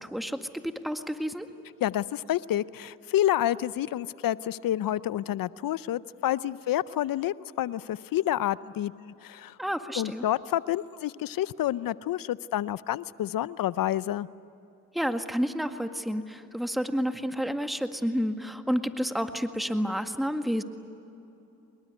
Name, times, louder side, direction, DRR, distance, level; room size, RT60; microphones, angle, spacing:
voice 1, 0.0-1.5 9.6-10.2 14.9-20.6, equal, ahead, 7 dB, 1.8 m, -30 dB
voice 2, 1.8-9.6 10.0-14.3, left 12 dB, 75° left, 18 dB, 0.6 m, -29 dB
25.0 x 21.5 x 9.6 m, 2.9 s
supercardioid pair, 45°, 34 cm